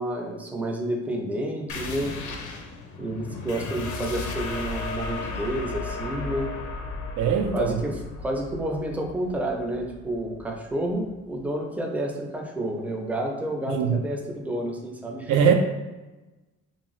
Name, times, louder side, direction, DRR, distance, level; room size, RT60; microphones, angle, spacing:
voice 1, 0.0-2.2 3.0-6.5 7.5-15.4, right 1 dB, 5° right, 1 dB, 0.5 m, -30 dB
sound 1, 1.7-10.9, left 3 dB, 75° left, 0.5 m, -35 dB
voice 2, 7.2-7.8 13.7-14.0 15.3-15.5, right 7 dB, 80° right, 5 dB, 0.5 m, -21 dB
2.6 x 2.3 x 3.0 m, 1.1 s
cardioid pair, 90°, 30 cm